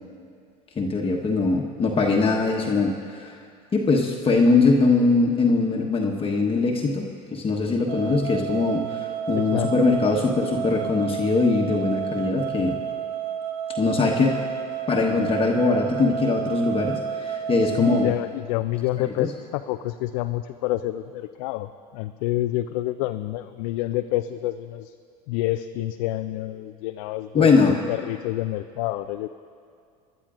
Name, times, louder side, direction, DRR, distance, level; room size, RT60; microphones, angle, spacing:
voice 1, 0.8-3.4 3.7-12.8 13.8-14.4 14.9-18.1 19.1-19.3 27.3-27.7, left 3 dB, 25° left, -1 dB, 1.2 m, -22 dB
sound 1, 7.9-18.1, right 8 dB, 65° right, 1.0 m, -30 dB
voice 2, 9.4-9.8 17.8-24.9 25.3-29.3, left 15 dB, 65° left, 9 dB, 0.4 m, -28 dB
24.5 x 12.0 x 2.5 m, 2.3 s
hypercardioid pair, 75°, 20 cm